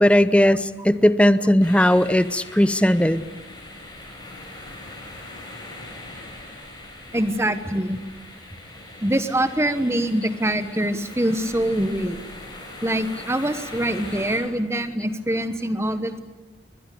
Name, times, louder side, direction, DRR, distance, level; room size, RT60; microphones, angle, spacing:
voice 1, 0.0-3.3, left 1 dB, 5° left, 14 dB, 0.7 m, -17 dB
sound 1, 1.6-14.4, left 2 dB, 25° left, 7.0 m, -41 dB
voice 2, 7.1-8.0 9.0-12.2 12.8-16.2, right 1 dB, 15° right, 11 dB, 1.2 m, -24 dB
22.0 x 21.0 x 8.5 m, 1.3 s
head